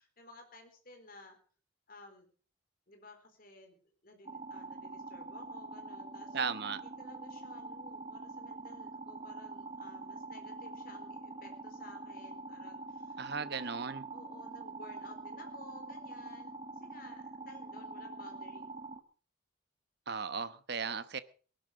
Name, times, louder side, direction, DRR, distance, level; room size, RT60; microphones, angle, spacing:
voice 1, 0.0-1.4 1.9-2.3 2.9-6.4 6.8-13.8 14.1-18.7, left 2 dB, 45° left, 6 dB, 4.0 m, -56 dB
sound 1, 4.3-19.0, right 3 dB, 30° right, 1.3 m, -45 dB
voice 2, 6.3-6.8 13.2-14.0 20.1-21.2, right 5 dB, 55° right, 13 dB, 1.0 m, -36 dB
18.5 x 11.5 x 5.0 m, 0.42 s
head